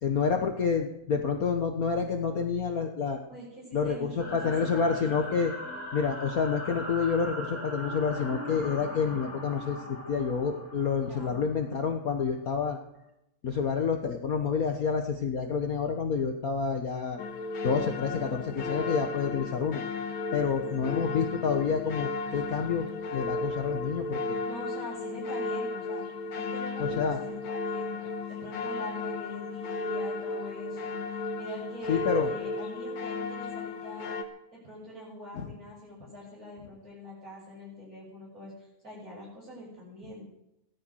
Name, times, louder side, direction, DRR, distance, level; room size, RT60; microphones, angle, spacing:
voice 1, 0.0-3.2 3.7-5.5 5.9-9.8 10.1-12.8 13.4-17.2 17.6-19.8 20.3-24.4 26.8-27.2 31.9-32.3 35.3-35.5, left 6 dB, 65° left, 4 dB, 0.8 m, -28 dB
voice 2, 3.3-5.2 11.1-11.4 18.0-18.7 20.6-20.9 24.4-26.0 26.3-28.0 28.3-34.2 34.5-40.3, equal, 30° right, -8 dB, 7.1 m, -45 dB
sound 1, 4.2-12.2, left 1 dB, 5° left, 4.5 m, -40 dB
sound 2, 17.2-34.2, left 3 dB, 50° left, 1.8 m, -34 dB
17.0 x 13.0 x 6.4 m, 0.84 s
omnidirectional pair, 3.3 m